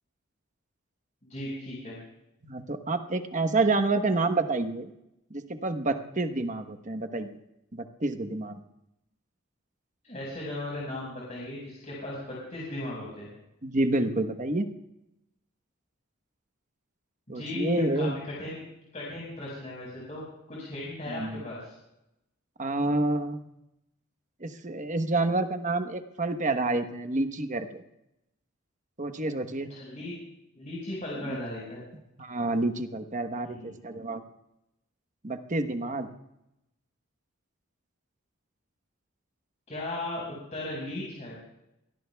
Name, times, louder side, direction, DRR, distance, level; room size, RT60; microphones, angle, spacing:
voice 1, 1.2-2.0 10.0-13.3 17.3-18.6 18.9-20.2 20.5-21.7 29.7-30.1 30.5-31.8 33.4-33.8 39.7-41.3, left 1 dB, 35° left, -6 dB, 5.0 m, -37 dB
voice 2, 2.4-4.9 5.3-7.3 7.7-8.6 13.6-14.7 17.3-18.2 21.1-21.4 22.6-23.4 24.4-27.8 29.0-29.7 31.2-31.4 32.2-34.2 35.2-36.1, right 2 dB, 35° right, 8 dB, 1.1 m, -28 dB
24.0 x 18.5 x 2.3 m, 0.85 s
head